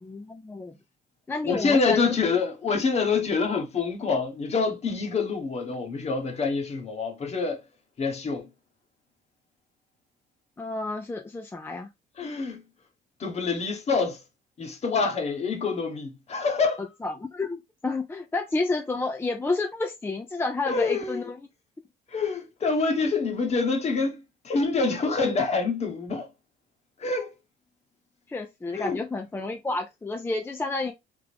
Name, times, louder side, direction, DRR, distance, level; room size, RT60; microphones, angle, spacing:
voice 1, 0.0-0.7 1.3-2.1 10.6-11.9 17.0-17.6 17.8-21.4 28.3-30.9, left 3 dB, 15° left, 0.6 m, -30 dB
voice 2, 1.4-7.6 8.0-8.5 12.2-12.6 13.2-14.2 14.6-16.8 20.7-21.2 22.1-26.3 27.0-27.3 28.7-29.0, left 4 dB, 40° left, 1.2 m, -26 dB
3.6 x 3.5 x 3.4 m
cardioid pair, 110°, 17 cm